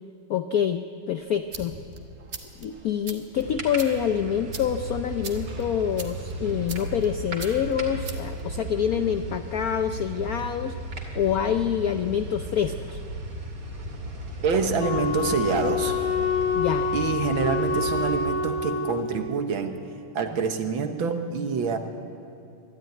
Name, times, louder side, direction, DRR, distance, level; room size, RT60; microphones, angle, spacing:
voice 1, 0.3-1.7 2.6-10.7 11.1-13.0 16.5-16.9, left 8 dB, 75° left, 8 dB, 0.8 m, -26 dB
sound 1, 1.2-9.3, right 4 dB, 35° right, 1.5 m, -43 dB
sound 2, 3.3-18.3, right 1 dB, 55° right, 3.0 m, -35 dB
voice 2, 14.4-16.0 16.9-19.8 20.1-21.8, right 5 dB, 70° right, 6 dB, 2.0 m, -26 dB
Wind instrument woodwind instrument, 14.8-19.1, left 4 dB, 90° left, 2.1 m, -27 dB
23.0 x 12.5 x 9.3 m, 2.7 s
omnidirectional pair, 2.3 m